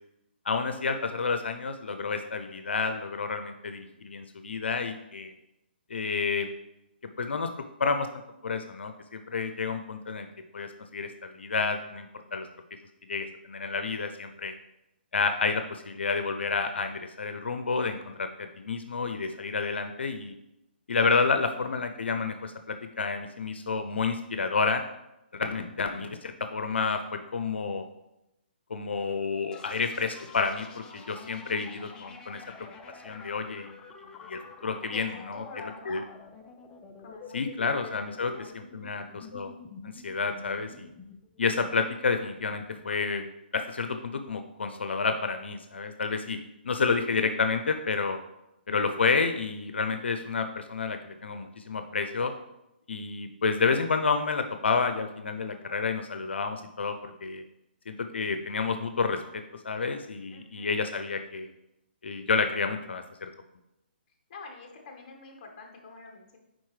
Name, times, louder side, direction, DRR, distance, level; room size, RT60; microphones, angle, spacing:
voice 1, 0.5-5.3 5.9-6.5 7.2-7.5 7.8-8.1 8.4-10.3 10.5-12.5 13.1-14.5 15.1-20.3 20.9-24.8 25.3-27.9 28.7-32.4 33.0-33.8 34.3-36.0 37.3-39.5 39.8-40.9 41.4-43.3 43.5-46.4 46.6-48.2 48.7-52.3 52.9-57.4 57.9-61.5 62.0-63.3, left 4 dB, 85° left, 8 dB, 0.5 m, -30 dB
sound 1, 29.5-43.1, left 5 dB, 15° left, 0.4 m, -48 dB
voice 2, 34.9-36.0 37.0-38.6 60.3-60.7 64.3-66.4, left 4 dB, 35° left, 1 dB, 1.3 m, -47 dB
9.5 x 3.9 x 3.2 m, 0.89 s
hypercardioid pair, 155°, 6 cm